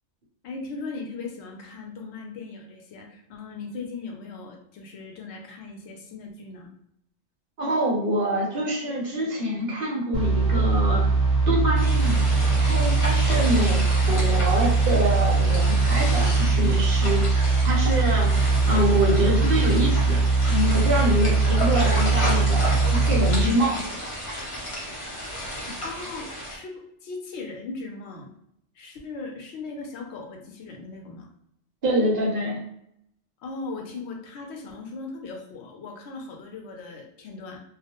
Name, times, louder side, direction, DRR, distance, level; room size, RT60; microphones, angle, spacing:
voice 1, 0.4-6.7 25.8-28.3 28.7-31.3 33.4-37.6, left 3 dB, 75° left, 1 dB, 0.8 m, -38 dB
voice 2, 7.6-11.1 11.5-18.3 18.7-23.8 31.8-32.6, equal, 55° right, -3 dB, 0.8 m, -26 dB
sound 1, 10.1-23.4, right 3 dB, 15° right, 1.2 m, -21 dB
sound 2, 11.8-26.6, equal, 35° left, 0.6 m, -33 dB
2.3 x 2.1 x 2.8 m, 0.75 s
omnidirectional pair, 1.2 m